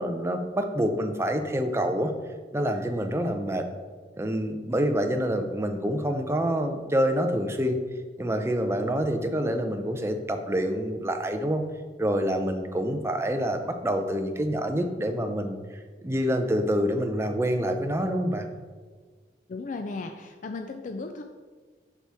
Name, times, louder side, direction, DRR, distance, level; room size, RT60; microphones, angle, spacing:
voice 1, 0.0-2.1 2.5-3.7 4.2-7.8 8.2-11.6 12.0-15.6 16.0-18.5, equal, 15° right, 5 dB, 0.5 m, -27 dB
voice 2, 19.5-21.2, left 3 dB, 45° left, 5 dB, 0.4 m, -35 dB
6.9 x 6.1 x 3.4 m, 1.5 s
head